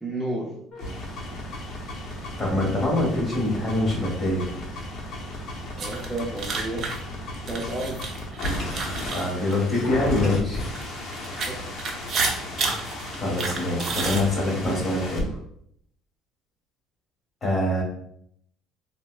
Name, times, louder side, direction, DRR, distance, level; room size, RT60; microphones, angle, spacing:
voice 1, 0.0-0.6 5.8-7.0 7.5-8.2 11.5-11.6, right 1 dB, 5° right, -4 dB, 0.5 m, -31 dB
sound 1, 0.7-15.2, left 1 dB, 60° left, 0.8 m, -34 dB
voice 2, 2.4-4.5 9.1-10.7 13.2-15.3 17.4-17.8, left 1 dB, 30° left, -3 dB, 1.4 m, -24 dB
sound 2, 5.8-10.1 10.6-14.8, right 4 dB, 45° right, 0.6 m, -30 dB
4.0 x 2.1 x 2.3 m, 0.70 s
cardioid pair, 115°, 0 cm